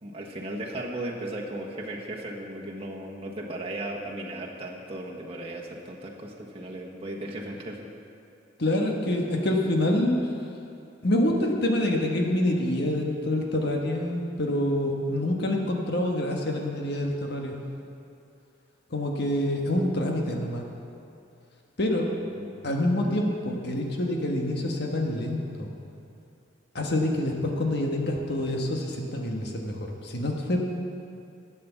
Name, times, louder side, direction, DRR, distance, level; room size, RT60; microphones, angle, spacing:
voice 1, 0.0-7.9 22.2-22.5, right 1 dB, 30° right, -2 dB, 1.3 m, -36 dB
voice 2, 8.6-10.2 11.0-17.5 18.9-20.6 21.8-22.1 22.6-25.7 26.7-29.8 30.0-30.6, left 1 dB, 60° left, 1 dB, 1.4 m, -26 dB
12.0 x 8.7 x 7.2 m, 2.7 s
head